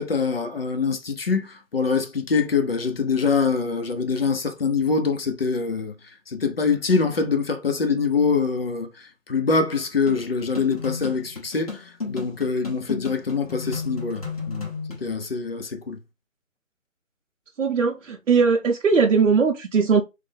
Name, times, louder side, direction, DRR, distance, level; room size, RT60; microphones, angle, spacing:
voice 1, 0.0-5.9 6.3-14.7 15.0-16.0, left 5 dB, 45° left, 0.6 m, -24 dB
sound 1, 10.1-15.1, left 4 dB, 25° left, 0.9 m, -34 dB
voice 2, 17.6-20.0, right 5 dB, 65° right, 0.6 m, -19 dB
3.2 x 2.1 x 3.3 m
figure-of-eight pair, 160°, 41 cm